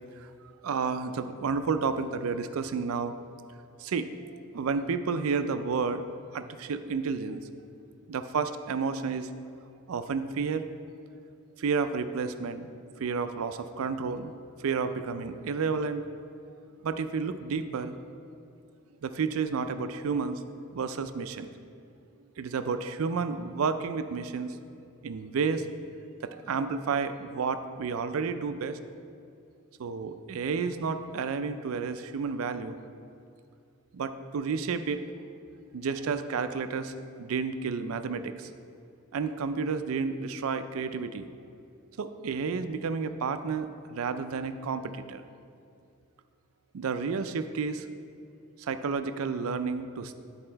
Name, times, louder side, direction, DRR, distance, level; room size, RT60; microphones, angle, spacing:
voice 1, 0.6-3.1 3.8-6.0 6.3-7.4 8.1-9.3 9.9-10.7 11.6-12.7 13.0-14.3 14.6-16.1 16.8-17.9 19.0-20.4 20.7-21.5 22.4-24.6 25.0-25.6 26.2-28.8 29.8-32.8 33.9-35.0 35.7-36.9 37.2-38.5 39.1-41.3 42.0-45.2 46.7-47.9 48.6-50.1, right 5 dB, 80° right, 10 dB, 0.4 m, -31 dB
9.8 x 4.3 x 4.4 m, 2.4 s
head